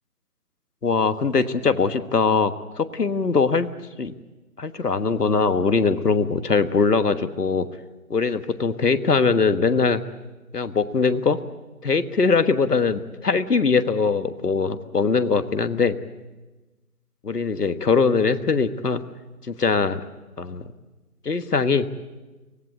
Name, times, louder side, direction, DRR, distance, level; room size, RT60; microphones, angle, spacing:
voice 1, 0.8-3.7 4.0-4.1 4.6-7.7 8.1-10.0 10.5-11.4 11.8-16.0 17.2-19.0 19.5-20.0 20.4-20.7 21.2-21.9, left 4 dB, 90° left, 11 dB, 1.5 m, -21 dB
24.0 x 19.0 x 8.1 m, 1.2 s
figure-of-eight pair, 170°, 46 cm